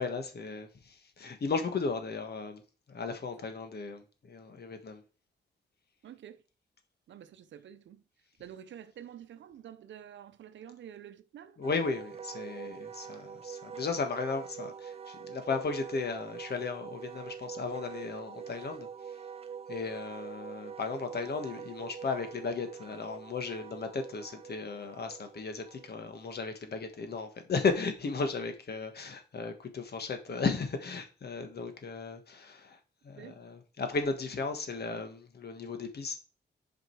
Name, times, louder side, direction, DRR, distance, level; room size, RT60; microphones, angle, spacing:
voice 1, 0.0-2.6 2.9-5.0 11.6-19.2 19.7-36.2, left 4 dB, 60° left, 1.5 m, -35 dB
voice 2, 6.0-6.4 7.1-8.0 8.4-11.6 13.1-13.3 33.1-33.4, right 9 dB, 85° right, 0.7 m, -49 dB
Wind instrument woodwind instrument, 11.6-26.3, right 7 dB, 35° right, 0.4 m, -45 dB
7.9 x 5.1 x 4.6 m
cardioid pair, 75°, 19 cm